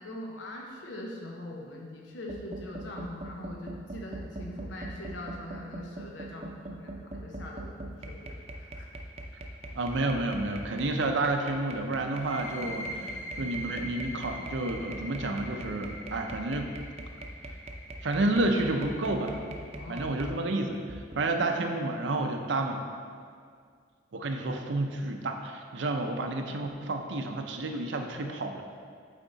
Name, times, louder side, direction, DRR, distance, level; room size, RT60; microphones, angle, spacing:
voice 1, 0.0-8.3 8.5-8.9 19.8-20.4, left 1 dB, 80° left, -1 dB, 0.8 m, -42 dB
sound 1, 2.3-20.4 20.9-21.2, right 1 dB, 35° right, 0.6 m, -42 dB
voice 2, 9.8-13.1 13.4-16.7 18.0-19.4 19.9-22.8 24.1-28.6, right 2 dB, 75° right, 4 dB, 0.6 m, -30 dB
sound 2, 12.1-19.5, equal, 15° left, 1.1 m, -43 dB
9.2 x 3.6 x 4.0 m, 2.1 s
head